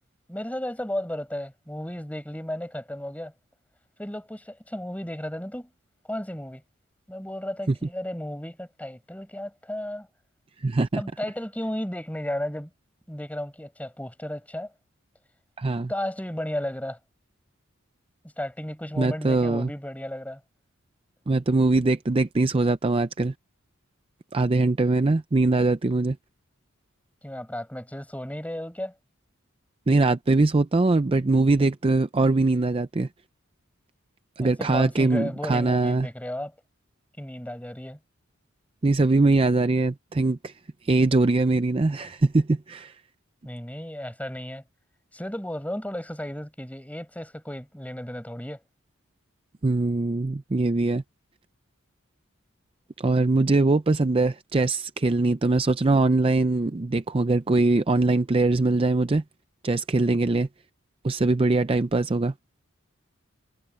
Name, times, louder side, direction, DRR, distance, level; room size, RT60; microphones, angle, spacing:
voice 1, 0.3-3.3 4.0-5.7 6.1-6.6 7.1-10.1 10.9-12.7 13.1-14.7 15.9-17.0 18.4-20.4 27.2-28.9 34.4-36.5 37.2-38.0 43.4-44.6 45.1-48.6, left 1 dB, 5° left, 5.3 m, -34 dB
voice 2, 10.6-11.0 15.6-15.9 19.0-19.7 21.3-23.3 24.3-26.2 29.9-33.1 34.4-36.1 38.8-40.5 40.8-43.0 49.6-51.0 53.0-59.2 59.6-60.5 61.0-62.3, right 2 dB, 25° right, 0.5 m, -22 dB
head